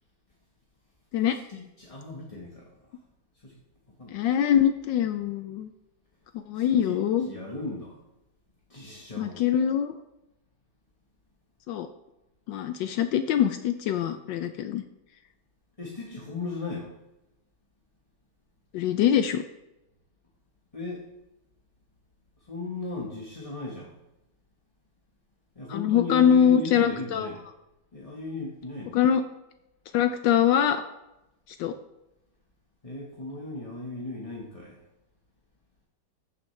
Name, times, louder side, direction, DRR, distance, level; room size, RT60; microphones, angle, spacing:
voice 1, 1.2-3.0 3.4-3.6 4.0-4.3 6.5-7.0 7.2-8.0 8.7-9.4 15.8-16.9 20.7-21.0 22.4-24.0 25.5-27.5 27.9-29.0 32.8-34.8, left 2 dB, 20° left, -4 dB, 1.1 m, -37 dB
voice 2, 4.1-5.7 6.5-7.3 9.2-10.0 11.7-11.9 12.5-14.8 18.7-19.4 25.7-27.3 28.9-29.2 29.9-30.8 31.6-31.7, left 9 dB, 75° left, 9 dB, 1.2 m, -23 dB
14.5 x 8.2 x 3.2 m, 0.94 s
omnidirectional pair, 2.1 m